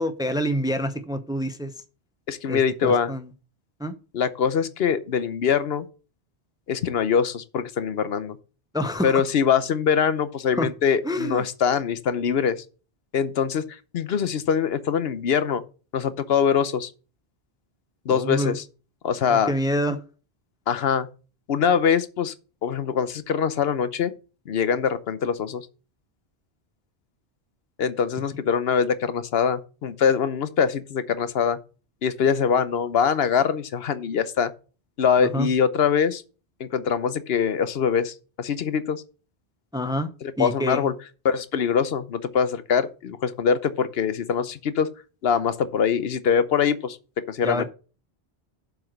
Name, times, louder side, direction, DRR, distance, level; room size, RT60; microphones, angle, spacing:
voice 1, 0.0-1.7 2.5-3.3 3.8-3.9 8.7-9.2 10.5-10.7 11.0-11.4 18.1-18.6 19.3-20.0 35.2-35.5 39.7-40.1 40.4-40.8 47.4-47.6, equal, 5° right, 0.6 m, -27 dB
voice 2, 2.3-3.1 4.1-5.8 6.7-8.4 9.0-12.6 13.1-15.6 15.9-16.9 18.1-18.6 19.0-19.5 20.7-21.1 21.5-22.3 22.6-24.1 24.5-25.7 27.8-31.6 32.0-34.5 35.0-36.2 36.6-39.0 40.2-40.9 41.2-44.9 45.2-47.0 47.3-47.6, left 7 dB, 70° left, 0.9 m, -23 dB
7.6 x 4.8 x 6.4 m
omnidirectional pair, 1.1 m